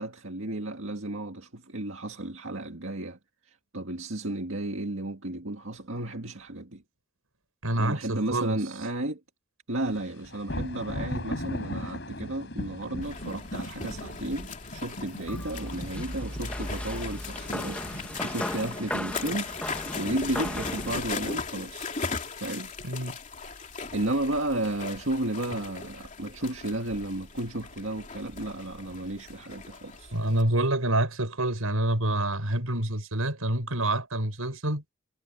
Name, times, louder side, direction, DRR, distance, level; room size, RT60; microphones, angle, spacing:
voice 1, 0.0-3.2 3.5-6.8 7.8-9.2 9.7-21.9 22.4-22.7 23.9-30.1, right 1 dB, 65° right, 2.0 m, -33 dB
voice 2, 7.6-8.6 22.8-23.2 30.1-34.8, right 1 dB, 85° right, 5.7 m, -27 dB
sound 1, 9.9-18.4, left 1 dB, 55° left, 6.0 m, -38 dB
sound 2, 13.0-30.4, left 4 dB, 35° left, 3.0 m, -38 dB
sound 3, 15.3-21.0, left 1 dB, 5° left, 1.5 m, -36 dB
head